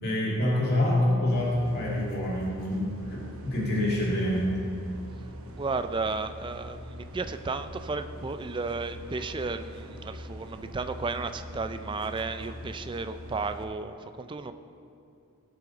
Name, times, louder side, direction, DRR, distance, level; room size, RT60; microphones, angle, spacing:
voice 1, 0.0-4.5, left 1 dB, 50° left, -6 dB, 2.1 m, -26 dB
sound 1, 1.3-13.6, equal, 65° right, 0.9 m, -43 dB
voice 2, 5.6-14.5, right 3 dB, 20° right, 9 dB, 0.4 m, -33 dB
16.0 x 6.0 x 4.0 m, 2.5 s
head